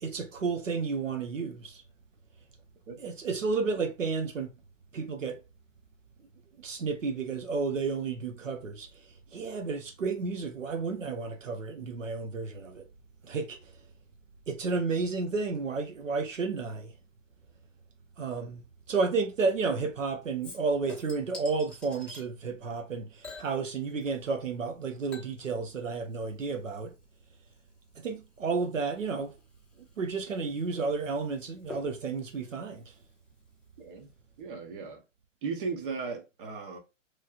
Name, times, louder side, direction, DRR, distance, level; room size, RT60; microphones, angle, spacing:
voice 1, 0.0-1.8 3.0-4.5 4.9-5.4 6.6-12.9 13.2-13.7 14.5-16.9 18.2-26.9 28.0-29.3 30.0-32.9, right 4 dB, 90° right, 0.7 m, -32 dB
Chink clink / Liquid, 20.4-22.3 23.2-24.4 24.6-33.7 34.0-34.1, left 2 dB, 5° left, 0.8 m, -51 dB
voice 2, 33.8-34.1 34.4-35.0 35.4-36.8, right 5 dB, 45° right, 1.1 m, -36 dB
3.1 x 2.7 x 2.4 m
figure-of-eight pair, 125°, 37 cm